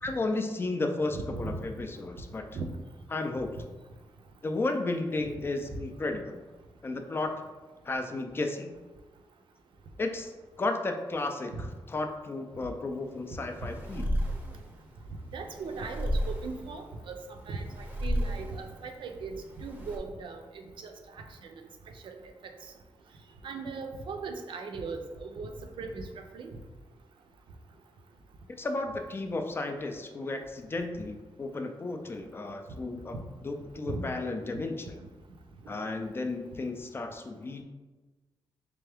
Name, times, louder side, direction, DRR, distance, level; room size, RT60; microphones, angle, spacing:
voice 1, 0.0-2.4 3.1-3.5 4.4-6.4 6.8-7.3 7.9-8.7 10.0-10.3 10.6-14.1 28.6-33.2 33.4-35.0 35.7-37.6, left 2 dB, 25° left, 5 dB, 0.3 m, -33 dB
voice 2, 1.1-1.6 2.5-2.7 11.5-11.7 15.3-17.2 17.5-20.9 21.4-21.5 22.0-22.1 22.4-22.5 23.4-25.5 25.8-26.1 26.3-26.6 33.9-34.0, right 4 dB, 70° right, 5 dB, 0.5 m, -38 dB
sound 1, 13.0-20.0, equal, 20° right, 0.6 m, -34 dB
3.5 x 3.3 x 3.4 m, 1.2 s
wide cardioid pair, 160°, 9 cm